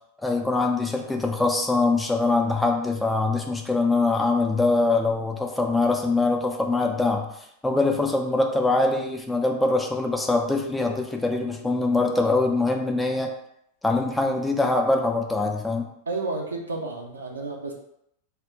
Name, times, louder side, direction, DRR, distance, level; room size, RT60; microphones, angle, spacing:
voice 1, 0.2-7.3 7.6-13.3 13.8-15.9, left 3 dB, 5° left, 1 dB, 0.3 m, -23 dB
voice 2, 16.1-17.7, right 3 dB, 75° right, 0 dB, 0.4 m, -31 dB
2.1 x 2.1 x 3.5 m, 0.75 s
figure-of-eight pair, 90°, 0 cm